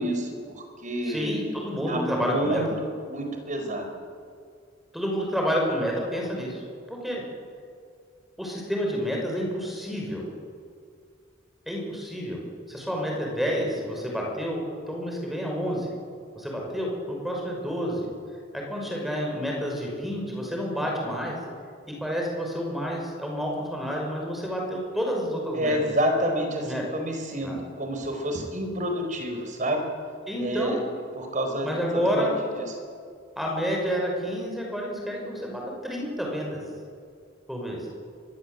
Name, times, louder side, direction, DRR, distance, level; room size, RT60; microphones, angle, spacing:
voice 1, 0.0-1.4 1.9-2.6 3.1-3.9 25.5-29.9 30.4-30.8 31.1-32.3 32.6-32.8, equal, 40° right, 4 dB, 4.8 m, -29 dB
voice 2, 1.0-2.6 4.9-6.6 6.9-7.2 8.4-10.3 11.7-12.4 12.7-15.9 16.3-18.1 18.5-21.4 21.9-25.8 26.6-26.8 27.4-27.6 30.3-30.8 31.6-32.3 33.4-36.6 37.5-37.9, equal, ahead, -1 dB, 5.9 m, -29 dB
25.5 x 22.0 x 8.2 m, 2.2 s
head